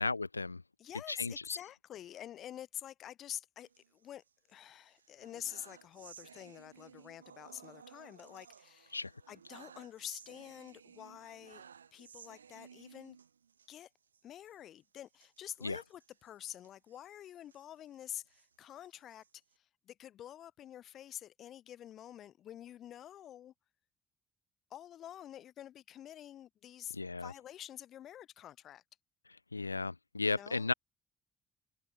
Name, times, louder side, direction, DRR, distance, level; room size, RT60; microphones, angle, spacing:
voice 1, 0.0-0.6 1.1-1.6 8.9-9.1 15.6-15.8 26.9-27.3 29.5-30.7, left 3 dB, 90° left, 0.7 m, -35 dB
voice 2, 0.8-4.2 4.5-9.0 9.3-11.6 11.9-13.2 13.7-13.9 14.2-19.2 19.6-23.5 24.7-28.8 30.2-30.7, left 11 dB, 55° left, 3.0 m, -48 dB
sound 1, 3.6-4.5 4.9-13.7 14.1-14.2 14.5-14.6 15.1-17.7 18.1-19.5, right 7 dB, 85° right, 7.5 m, -57 dB
figure-of-eight pair, 50°, 0 cm